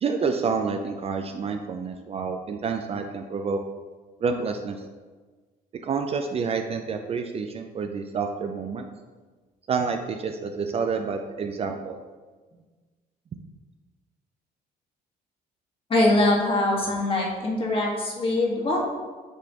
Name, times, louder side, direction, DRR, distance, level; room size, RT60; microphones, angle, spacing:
voice 1, 0.0-3.6 4.2-4.8 5.8-8.9 9.7-12.0, right 5 dB, 35° right, 5 dB, 0.4 m, -28 dB
voice 2, 15.9-18.9, left 2 dB, 30° left, -2 dB, 1.5 m, -23 dB
8.0 x 4.1 x 2.9 m, 1.4 s
cardioid pair, 110°, 17 cm